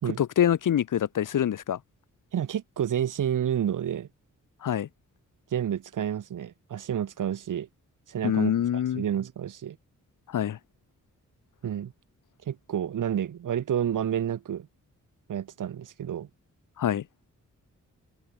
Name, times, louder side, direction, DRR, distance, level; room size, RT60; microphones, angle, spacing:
voice 1, 0.2-1.8 4.6-4.9 8.2-9.0 10.3-10.6 16.8-17.0, left 10 dB, 90° left, 2.3 m, -25 dB
voice 2, 2.3-4.1 5.5-7.7 8.1-9.8 11.6-11.9 12.5-14.7 15.3-16.3, right 9 dB, 90° right, 3.8 m, -30 dB
open air
wide cardioid pair, 155°, 31 cm